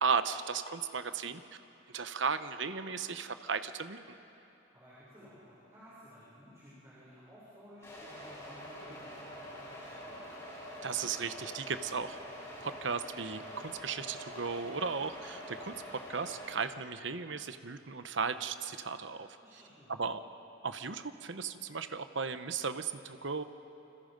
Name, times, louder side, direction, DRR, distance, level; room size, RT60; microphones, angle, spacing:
voice 1, 0.0-1.4 1.9-4.0 10.8-12.2 12.6-19.3 19.9-20.2 20.6-23.4, right 5 dB, 70° right, 10 dB, 1.0 m, -35 dB
voice 2, 4.7-10.2 12.5-12.7 19.4-20.0, equal, 15° right, -10 dB, 6.8 m, -56 dB
sound 1, 7.8-16.5, equal, 15° left, 7.8 m, -46 dB
28.0 x 26.5 x 5.3 m, 3.0 s
head